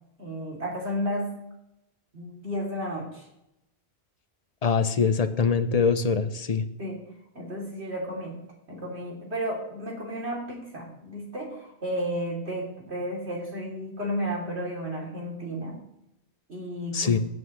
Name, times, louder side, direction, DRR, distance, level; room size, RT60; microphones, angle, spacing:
voice 1, 0.2-1.3 2.1-3.3 6.8-7.0 7.3-8.4 8.7-15.8 16.5-17.2, equal, 75° right, -2 dB, 3.5 m, -32 dB
voice 2, 4.6-6.6 16.9-17.2, left 5 dB, 40° left, 11 dB, 0.7 m, -23 dB
16.0 x 9.2 x 3.2 m, 0.84 s
omnidirectional pair, 1.1 m